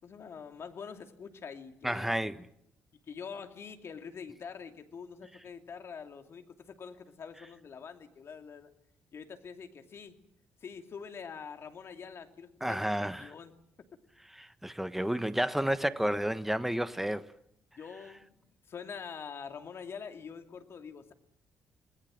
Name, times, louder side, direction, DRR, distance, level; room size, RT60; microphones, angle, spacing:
voice 1, 0.0-2.2 3.1-8.7 9.1-10.2 10.6-13.5 17.8-21.1, left 6 dB, 55° left, 2.7 m, -45 dB
voice 2, 1.8-2.4 12.6-13.3 14.4-17.2, right 1 dB, 5° right, 1.3 m, -31 dB
27.0 x 20.0 x 7.7 m
hypercardioid pair, 50°, 5 cm